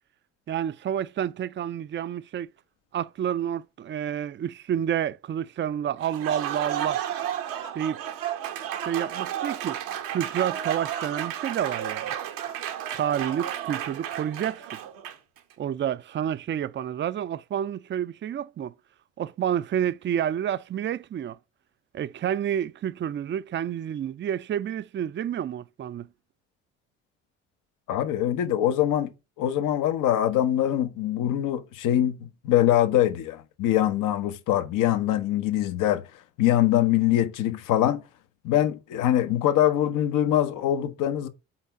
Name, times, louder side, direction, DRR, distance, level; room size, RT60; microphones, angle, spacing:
voice 1, 0.5-2.5 2.9-7.0 7.7-8.0 8.9-9.8 10.1-12.1 12.9-14.7 15.6-18.7 19.2-21.4 21.9-26.1, right 9 dB, 35° right, 0.5 m, -29 dB
Applause, 6.0-15.4, right 10 dB, 80° right, 1.1 m, -32 dB
voice 2, 27.9-29.1 29.4-36.0 36.4-38.0 38.4-41.3, left 12 dB, 70° left, 1.0 m, -23 dB
5.8 x 4.6 x 5.7 m
supercardioid pair, 60°, 33 cm